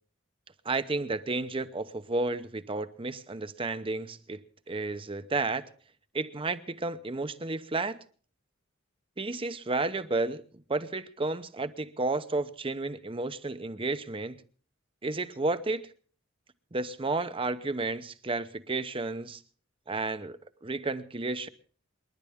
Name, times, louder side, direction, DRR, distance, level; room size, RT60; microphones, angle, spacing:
voice 1, 0.6-5.6 6.1-8.0 9.2-10.4 10.7-14.4 15.0-15.9 16.7-19.4 19.9-21.5, right 3 dB, 25° right, 0.8 m, -32 dB
28.5 x 11.0 x 3.6 m
head